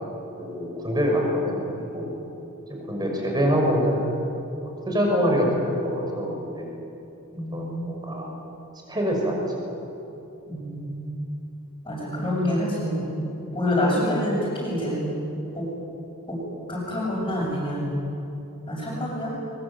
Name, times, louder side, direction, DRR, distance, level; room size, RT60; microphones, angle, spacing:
voice 1, 0.4-2.1 2.7-4.1 4.8-6.7 7.5-8.3 8.9-9.4, equal, 20° right, 0 dB, 5.7 m, -25 dB
voice 2, 7.3-7.9 10.5-11.1 11.8-13.1 13.5-15.0 15.5-15.6 16.7-17.9 18.7-19.4, left 1 dB, 20° left, -9 dB, 7.2 m, -27 dB
23.5 x 22.5 x 8.2 m, 2.9 s
head